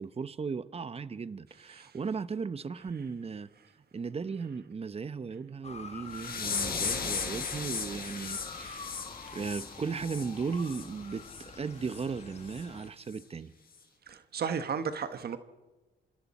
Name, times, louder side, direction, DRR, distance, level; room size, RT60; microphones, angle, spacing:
voice 1, 0.0-3.5 3.9-9.0 9.3-13.5, right 5 dB, 30° right, 1.0 m, -36 dB
Motor vehicle (road) / Siren, 5.6-12.9, left 4 dB, 30° left, 1.6 m, -48 dB
sound 1, 6.1-10.8 11.2-11.4 11.9-12.0 12.5-12.6 13.1-13.2, left 6 dB, 50° left, 4.5 m, -36 dB
voice 2, 14.1-15.4, right 6 dB, 50° right, 1.3 m, -34 dB
27.0 x 26.0 x 4.3 m
cardioid pair, 90°, 20 cm